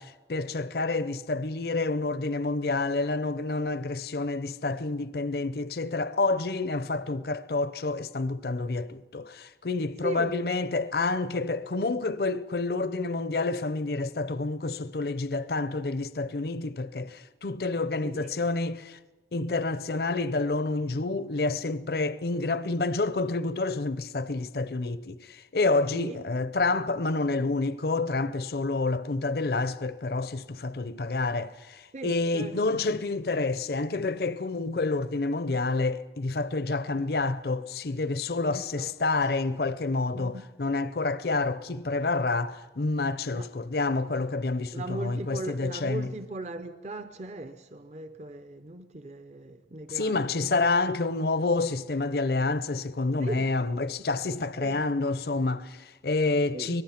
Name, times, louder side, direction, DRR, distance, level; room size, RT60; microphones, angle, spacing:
voice 1, 0.0-19.0 19.3-46.1 49.9-56.8, left 3 dB, 55° left, 0.6 m, -28 dB
voice 2, 18.0-18.4 25.9-26.2 31.9-32.8 38.5-38.9 40.1-40.4 43.4-43.5 44.7-50.6 53.2-53.5 54.6-54.9 56.5-56.8, right 2 dB, 40° right, 0.6 m, -38 dB
25.0 x 18.5 x 5.8 m
head